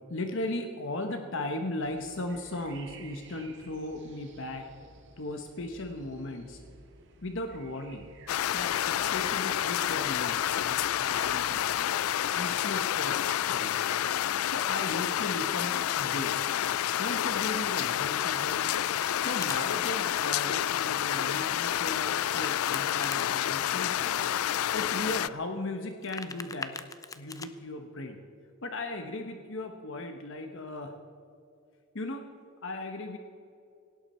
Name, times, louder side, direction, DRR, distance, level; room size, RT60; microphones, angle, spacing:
voice 1, 0.1-4.7 5.2-6.6 7.2-8.1 8.5-11.7 12.3-13.9 14.4-16.4 17.0-18.7 19.1-24.2 24.7-26.8 27.1-28.2 28.6-31.0 31.9-32.3 32.6-33.2, left 2 dB, 60° left, 5 dB, 1.1 m, -37 dB
sound 1, 1.8-11.8, right 4 dB, 55° right, 1.9 m, -53 dB
sound 2, 8.3-25.3, left 11 dB, 75° left, 0.4 m, -29 dB
Domestic sounds home sounds, 18.2-19.6 22.2-23.3 25.8-27.5, left 4 dB, 15° left, 0.6 m, -42 dB
18.5 x 17.0 x 4.4 m, 2.7 s
head